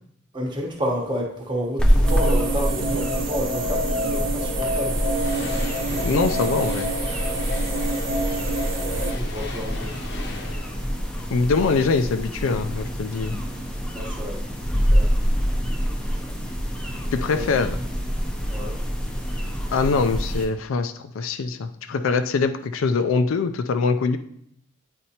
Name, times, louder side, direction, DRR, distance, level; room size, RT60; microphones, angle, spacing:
voice 1, 0.3-5.0 8.9-10.0 10.3-10.4 13.9-14.4 14.7-15.1 17.3-17.5 18.5-18.8, equal, 25° right, 0 dB, 1.0 m, -30 dB
sound 1, 1.8-20.4, equal, 5° left, 0.5 m, -26 dB
sound 2, 2.1-9.1, right 2 dB, 80° right, 0.7 m, -28 dB
sound 3, 4.6-12.1, left 3 dB, 60° left, 0.7 m, -39 dB
voice 2, 5.9-6.9 11.3-13.4 17.1-17.8 19.7-24.2, left 4 dB, 85° left, 8 dB, 0.4 m, -23 dB
8.8 x 4.2 x 2.8 m, 0.70 s
head